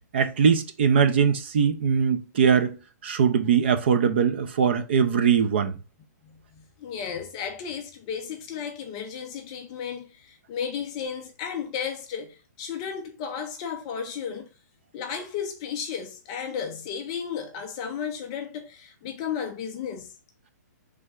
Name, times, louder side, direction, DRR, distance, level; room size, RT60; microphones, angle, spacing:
voice 1, 0.1-2.7 3.0-5.8, right 7 dB, 40° right, 0.5 m, -21 dB
voice 2, 6.2-14.5 14.9-20.1, left 7 dB, 20° left, 0.4 m, -34 dB
4.2 x 3.4 x 3.6 m
hypercardioid pair, 180°, 9 cm